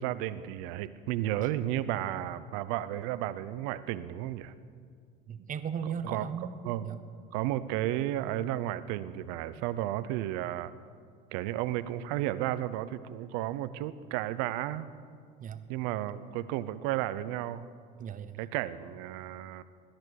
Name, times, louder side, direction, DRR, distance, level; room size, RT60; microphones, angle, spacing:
voice 1, 0.0-4.5 6.1-6.3 6.6-6.9 7.3-10.7 11.3-14.9 15.7-17.7 18.4-19.6, right 13 dB, 75° right, 14 dB, 0.7 m, -33 dB
voice 2, 5.3-6.6 6.8-7.0 15.4-15.7 18.0-18.5, right 7 dB, 40° right, 11 dB, 1.0 m, -37 dB
17.5 x 10.5 x 6.5 m, 2.1 s
supercardioid pair, 90°, 21 cm